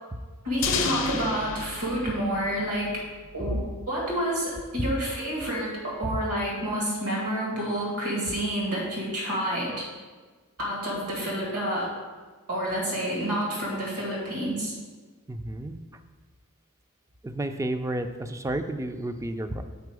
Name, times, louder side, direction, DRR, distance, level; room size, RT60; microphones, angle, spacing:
voice 1, 0.4-2.9 3.3-3.6 3.9-9.9 10.6-11.9 12.5-14.7, right 1 dB, 75° right, -3 dB, 1.9 m, -29 dB
sound 1, 0.6-3.4, left 6 dB, 60° left, 0.7 m, -32 dB
voice 2, 15.3-15.8 17.2-19.6, right 1 dB, 15° right, 8 dB, 0.3 m, -31 dB
6.8 x 4.3 x 4.7 m, 1.4 s
head